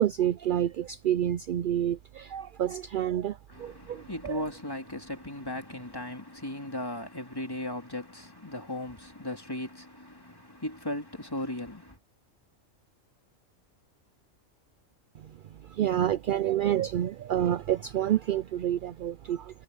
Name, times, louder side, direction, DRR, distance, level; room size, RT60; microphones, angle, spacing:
voice 1, 0.0-4.4 15.6-19.6, right 11 dB, 70° right, 0.5 m, -28 dB
voice 2, 3.5-12.0, left 1 dB, 15° left, 2.8 m, -37 dB
omnidirectional pair, 1.4 m